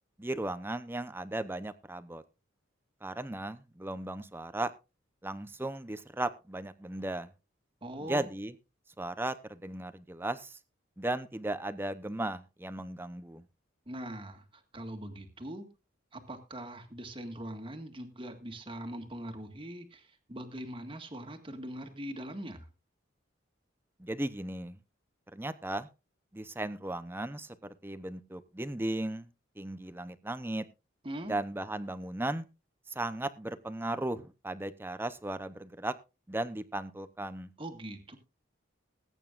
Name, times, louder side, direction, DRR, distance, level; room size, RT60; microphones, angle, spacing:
voice 1, 0.2-2.2 3.0-4.7 5.2-7.3 8.1-8.5 9.0-10.6 11.0-13.4 24.0-24.8 25.3-25.9 26.3-29.3 29.6-30.7 31.2-32.4 32.9-35.9 36.3-37.5, right 1 dB, 10° right, 12 dB, 0.7 m, -36 dB
voice 2, 7.8-8.3 13.9-15.7 16.1-22.7 31.0-31.4 37.6-38.2, right 1 dB, 25° right, 6 dB, 1.8 m, -42 dB
20.5 x 9.1 x 2.5 m, 0.29 s
head